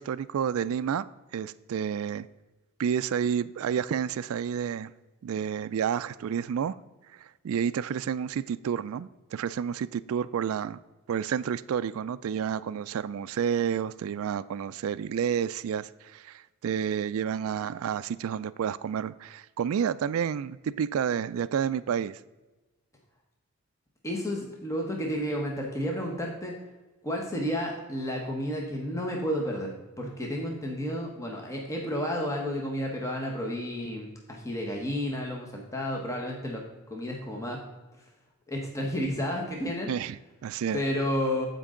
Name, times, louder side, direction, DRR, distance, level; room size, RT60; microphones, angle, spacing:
voice 1, 0.0-2.3 2.8-4.9 5.2-6.8 7.2-10.8 11.1-22.2 39.9-40.8, right 8 dB, 70° right, 14 dB, 0.3 m, -30 dB
voice 2, 24.0-26.5 27.0-36.6 36.9-37.6 38.5-39.9 40.7-41.5, equal, 15° left, 0 dB, 1.0 m, -31 dB
14.0 x 5.3 x 3.7 m, 1.2 s
head